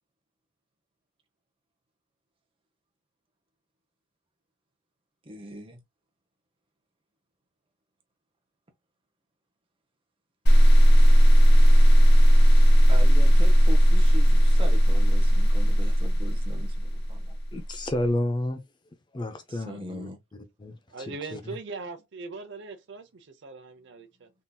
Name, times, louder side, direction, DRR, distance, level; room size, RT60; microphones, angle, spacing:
voice 1, 5.2-5.8 12.4-17.4 19.5-20.2, right 1 dB, 25° right, 0.7 m, -41 dB
sound 1, 10.5-17.6, equal, 50° left, 1.2 m, -17 dB
voice 2, 17.5-18.6 19.1-20.1 20.6-21.4, left 1 dB, 20° left, 0.4 m, -30 dB
voice 3, 20.9-24.3, right 3 dB, 60° right, 0.7 m, -40 dB
3.7 x 2.7 x 2.2 m
head